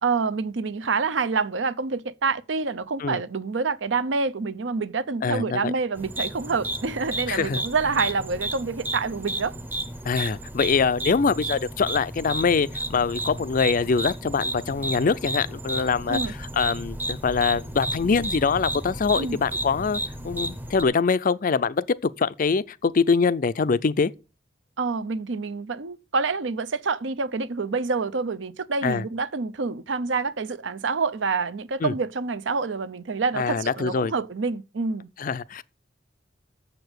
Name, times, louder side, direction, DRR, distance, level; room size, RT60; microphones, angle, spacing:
voice 1, 0.0-9.5 16.1-16.3 19.2-19.4 24.8-35.1, right 4 dB, 70° right, 0.6 m, -27 dB
voice 2, 5.2-5.7 7.3-7.6 10.0-24.1 28.8-29.0 31.8-31.9 33.4-34.1 35.2-35.6, left 5 dB, 45° left, 0.4 m, -24 dB
sound 1, 6.0-20.8, right 1 dB, 10° right, 0.7 m, -33 dB
7.1 x 6.8 x 8.0 m
head